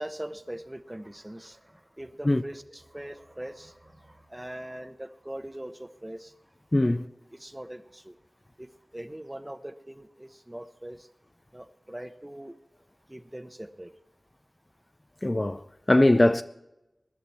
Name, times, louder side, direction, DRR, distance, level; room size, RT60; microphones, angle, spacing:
voice 1, 0.0-6.4 6.8-8.2 8.6-11.1 11.5-12.6 13.1-13.9, right 1 dB, 15° right, 0.9 m, -41 dB
voice 2, 6.7-7.1 15.2-16.4, left 1 dB, 25° left, 0.4 m, -21 dB
21.0 x 11.0 x 4.3 m
wide cardioid pair, 80°, 0 cm